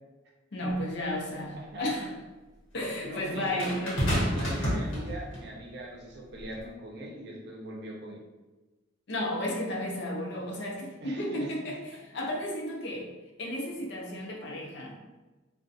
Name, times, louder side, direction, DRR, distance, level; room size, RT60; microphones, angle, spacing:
voice 1, 0.5-2.1 2.7-4.2 9.1-13.1 13.4-15.0, left 1 dB, 60° left, -1 dB, 0.5 m, -33 dB
sound 1, 0.7-0.8 3.6-5.5 6.4-6.6, equal, 80° left, 0.9 m, -29 dB
voice 2, 1.6-1.9 3.0-3.7 4.1-8.2 11.0-11.5, right 1 dB, 55° right, -2 dB, 0.5 m, -41 dB
2.4 x 2.1 x 2.6 m, 1.2 s
head